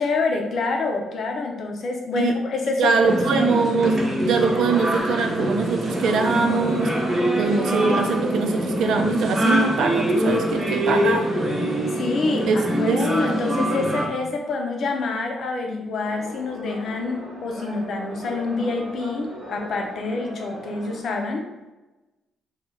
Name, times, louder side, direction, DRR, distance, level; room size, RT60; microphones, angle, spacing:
voice 1, 0.0-3.7 11.9-21.5, left 3 dB, 60° left, 2 dB, 0.6 m, -27 dB
voice 2, 2.8-6.9 7.4-11.2 12.5-12.6 12.9-13.0, right 4 dB, 75° right, 4 dB, 0.5 m, -23 dB
sound 1, 3.0-14.1, equal, 20° right, 0.9 m, -24 dB
sound 2, 16.0-21.0, right 1 dB, 60° right, 1.0 m, -39 dB
3.1 x 2.3 x 3.7 m, 1.1 s
cardioid pair, 90°, 0 cm